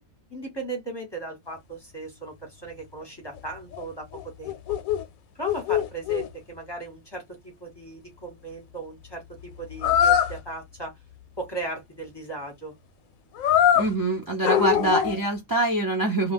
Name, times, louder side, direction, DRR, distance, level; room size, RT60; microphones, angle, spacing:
voice 1, 0.3-4.6 5.3-11.0 11.4-12.7, right 2 dB, 20° left, 0.9 m, -37 dB
sound 1, 3.4-3.5 3.7-3.8 4.1-5.0 5.4-6.3 9.8-10.4 13.4-13.9 14.4-15.3, left 10 dB, 75° left, 1.0 m, -22 dB
voice 2, 13.8-16.3, right 2 dB, 25° right, 0.4 m, -24 dB
2.4 x 2.3 x 3.4 m
omnidirectional pair, 1.5 m